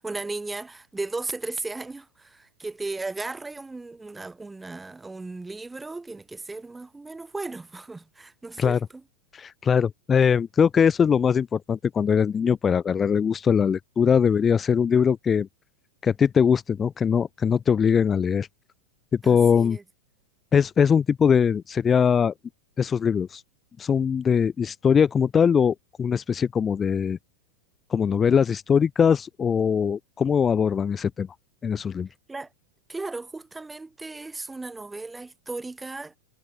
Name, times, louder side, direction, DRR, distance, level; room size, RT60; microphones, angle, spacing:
voice 1, 0.0-8.8 19.2-19.8 32.3-32.5 32.9-36.2, right 3 dB, 10° right, 6.1 m, -36 dB
voice 2, 9.3-15.5 16.0-18.5 19.1-19.8 20.5-22.3 22.8-23.4 23.8-27.2 27.9-31.3 31.6-32.1, left 7 dB, 20° left, 2.9 m, -21 dB
figure-of-eight pair, 90°, 0 cm